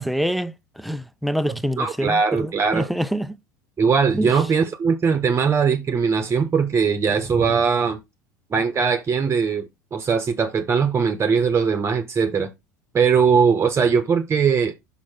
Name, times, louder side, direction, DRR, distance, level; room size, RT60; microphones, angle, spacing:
voice 1, 0.0-3.4 4.2-4.4, equal, ahead, 0.6 m, -26 dB
voice 2, 1.8-2.9 3.8-8.0 8.5-12.5 12.9-14.7, right 6 dB, 25° right, 1.0 m, -20 dB
6.3 x 6.0 x 4.4 m
hypercardioid pair, 75°, 10 cm